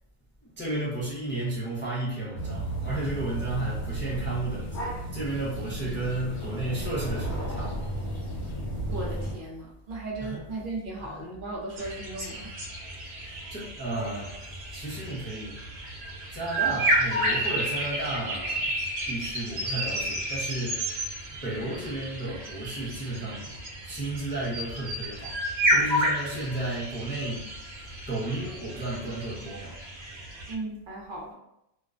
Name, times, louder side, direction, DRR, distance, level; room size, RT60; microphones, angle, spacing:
voice 1, 0.4-7.9 10.2-10.4 11.0-11.2 13.2-15.6 16.3-18.7 19.1-20.9 21.3-23.6 23.8-27.6 28.1-29.8, right 2 dB, 15° left, -7 dB, 0.4 m, -33 dB
sound 1, 2.4-9.3, right 1 dB, 50° left, 1.0 m, -33 dB
voice 2, 8.9-12.5 12.8-12.9 30.5-31.3, right 2 dB, 60° right, -3 dB, 0.7 m, -36 dB
sound 2, 11.8-30.5, right 1 dB, 90° right, 0.9 m, -31 dB
2.4 x 2.1 x 2.4 m, 0.81 s
omnidirectional pair, 1.0 m